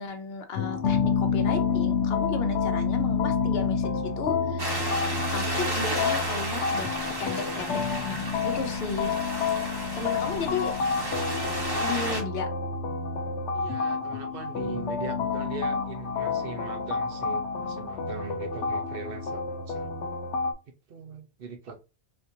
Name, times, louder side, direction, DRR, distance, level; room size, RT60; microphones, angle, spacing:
voice 1, 0.0-5.0 5.3-9.1 9.9-10.7 11.8-12.5, left 4 dB, 65° left, 6 dB, 0.9 m, -34 dB
sound 1, 0.5-20.5, left 5 dB, 90° left, 1.0 m, -29 dB
sound 2, 4.6-12.2, right 1 dB, 25° right, 0.9 m, -33 dB
voice 2, 13.5-20.0 20.9-21.8, right 5 dB, 60° right, 5 dB, 0.8 m, -40 dB
4.3 x 2.6 x 2.6 m, 0.30 s
omnidirectional pair, 1.2 m